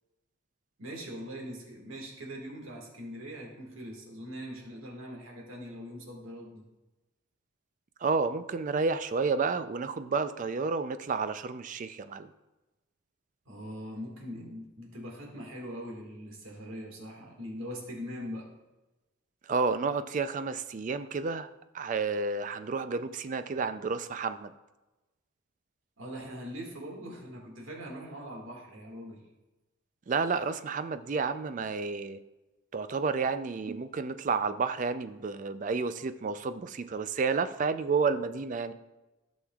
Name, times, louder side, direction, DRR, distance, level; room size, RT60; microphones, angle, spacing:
voice 1, 0.8-6.6 13.5-18.5 26.0-29.2, equal, 75° right, 0 dB, 1.8 m, -42 dB
voice 2, 8.0-12.3 19.5-21.5 21.7-24.5 30.1-32.2 32.7-38.7, right 4 dB, 40° right, 11 dB, 0.4 m, -30 dB
14.5 x 6.3 x 2.3 m, 1.1 s
head